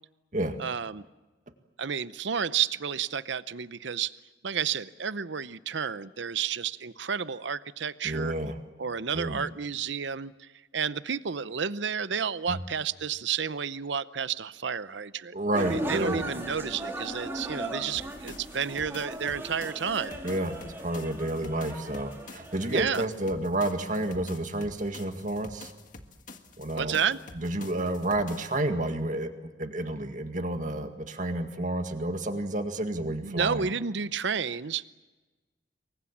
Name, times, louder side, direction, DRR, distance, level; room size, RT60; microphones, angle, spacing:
voice 1, 0.6-1.1 1.8-4.1 4.4-8.3 8.8-10.5 10.7-20.2 22.7-23.1 26.7-27.2 33.2-34.8, right 7 dB, 65° right, 16 dB, 0.7 m, -31 dB
voice 2, 8.0-8.5 9.1-9.4 12.5-12.6 15.3-16.2 20.2-25.7 26.6-27.0 27.4-29.3 29.6-33.7, right 1 dB, 40° right, 6 dB, 2.0 m, -30 dB
sound 1, 15.5-23.0, right 1 dB, 10° right, 3.4 m, -37 dB
sound 2, 17.9-28.6, left 3 dB, 40° left, 1.8 m, -48 dB
28.0 x 23.0 x 7.4 m, 1.2 s
head